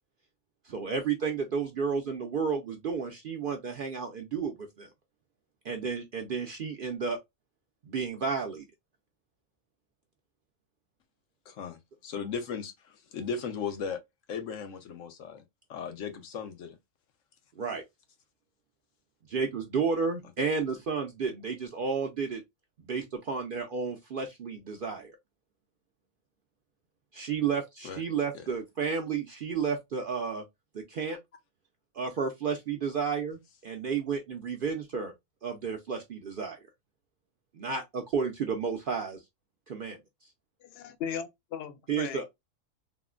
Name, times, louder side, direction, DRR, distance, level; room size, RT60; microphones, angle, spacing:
voice 1, 0.6-4.9 5.6-7.2 7.9-8.7 17.6-17.8 19.3-22.4 22.9-25.1 27.1-30.4 30.7-31.2 31.9-35.1 35.4-36.6 37.5-39.2 39.7-40.0 41.9-42.2, right 5 dB, 60° right, 0.6 m, -32 dB
voice 2, 11.5-14.0 14.3-15.4 15.7-16.8 27.8-28.0 28.3-28.4, left 6 dB, 75° left, 1.1 m, -37 dB
voice 3, 40.6-42.2, left 8 dB, 60° left, 0.7 m, -37 dB
3.6 x 2.0 x 2.3 m
omnidirectional pair, 1.4 m